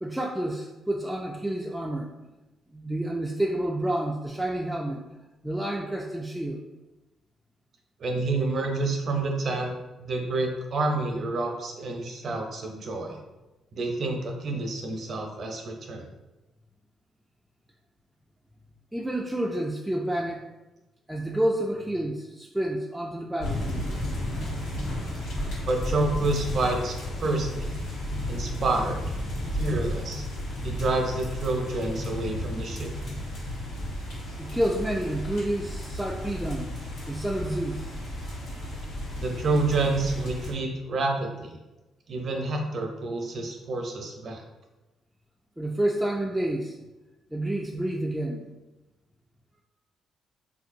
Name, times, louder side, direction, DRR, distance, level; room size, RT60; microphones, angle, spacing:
voice 1, 0.0-2.1 2.7-5.0 5.4-6.6 18.9-20.5 21.1-23.9 34.4-36.7 37.1-37.9 45.6-46.8 47.3-48.5, right 1 dB, 5° right, -1 dB, 0.3 m, -29 dB
voice 2, 8.0-13.2 13.7-16.1 25.7-27.7 28.3-29.0 29.5-30.2 30.6-32.9 39.2-41.6 42.1-44.4, right 2 dB, 55° right, 2 dB, 0.6 m, -28 dB
sound 1, 23.4-40.5, left 1 dB, 85° left, 1.1 m, -33 dB
3.7 x 2.7 x 2.5 m, 1.1 s
cardioid pair, 90°, 0 cm